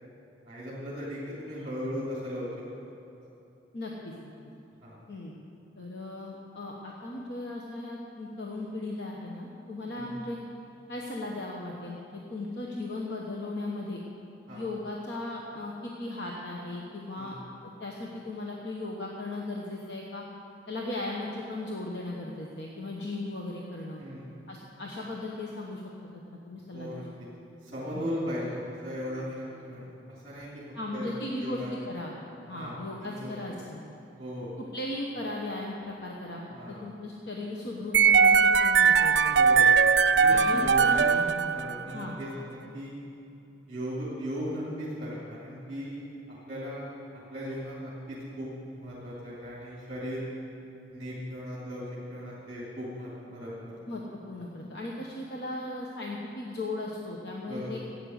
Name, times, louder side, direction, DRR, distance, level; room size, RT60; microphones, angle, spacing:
voice 1, 0.4-2.5 4.8-5.0 9.9-10.1 14.5-14.7 17.2-17.4 24.0-24.3 26.7-27.0 27.6-30.5 30.9-31.7 32.5-33.6 34.2-34.5 36.5-36.8 39.3-39.7 40.0-42.9 43.7-50.3 50.9-51.8 52.1-53.5 57.5-57.8, equal, 30° right, -7 dB, 3.1 m, -37 dB
voice 2, 3.7-4.1 5.1-5.3 5.7-10.4 10.9-14.0 14.5-17.4 17.6-20.2 20.7-24.0 24.5-25.8 26.1-27.0 27.9-28.1 30.7-31.6 31.9-32.1 32.5-33.8 34.7-36.4 36.7-39.4 40.3-41.1 41.9-42.2 53.9-57.8, left 2 dB, 60° left, -2 dB, 1.2 m, -37 dB
sound 1, 37.9-42.1, right 6 dB, 60° right, 0.4 m, -20 dB
13.0 x 8.8 x 7.9 m, 2.8 s
head